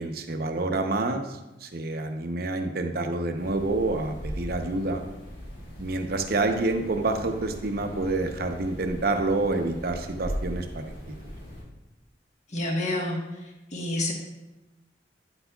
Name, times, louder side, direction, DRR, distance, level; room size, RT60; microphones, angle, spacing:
voice 1, 0.0-5.0 5.8-10.9, right 2 dB, 55° right, 5 dB, 0.8 m, -28 dB
sound 1, 3.4-11.6, equal, 85° left, 2.6 m, -39 dB
voice 2, 12.5-14.1, left 1 dB, 40° left, 0 dB, 1.4 m, -29 dB
9.9 x 8.1 x 2.3 m, 1.0 s
head